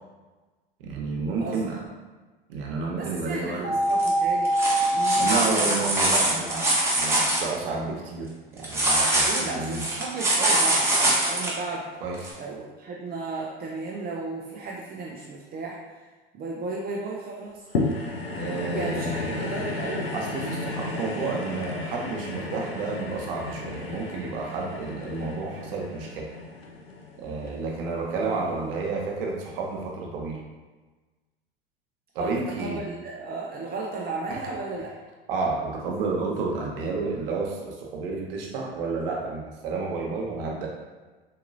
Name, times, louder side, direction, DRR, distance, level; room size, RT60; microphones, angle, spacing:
voice 1, 0.8-1.8 2.5-3.6 5.2-9.8 12.0-12.3 18.4-19.5 20.1-26.3 27.2-30.4 32.1-32.8 34.3-34.4 35.3-40.7, right 4 dB, 65° right, -1 dB, 1.0 m, -31 dB
voice 2, 2.9-5.8 9.2-11.9 12.4-16.1 16.3-17.7 18.7-20.2 28.2-28.8 32.2-34.9, right 3 dB, 30° right, -3 dB, 0.6 m, -34 dB
sound 1, 3.6-5.2, right 1 dB, 30° left, 1.1 m, -23 dB
sound 2, 3.9-4.1 4.4-7.4 8.6-11.5 12.2-12.3, right 1 dB, 10° right, 1.0 m, -23 dB
sound 3, 17.7-28.2 28.8-28.9, left 2 dB, 85° left, 0.6 m, -33 dB
4.0 x 2.8 x 2.6 m, 1.3 s
hypercardioid pair, 80°, 29 cm